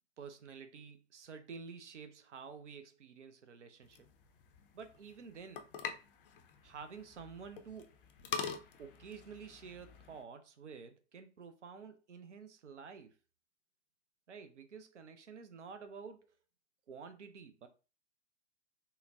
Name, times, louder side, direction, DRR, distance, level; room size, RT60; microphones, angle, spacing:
voice 1, 0.2-4.0 4.7-5.6 6.6-8.0 8.4-13.1 14.3-16.3 16.9-17.7, right 5 dB, 75° right, 0.6 m, -50 dB
sound 1, 3.8-10.2, left 7 dB, 50° left, 0.5 m, -45 dB
3.8 x 2.1 x 2.5 m
figure-of-eight pair, 105°, 36 cm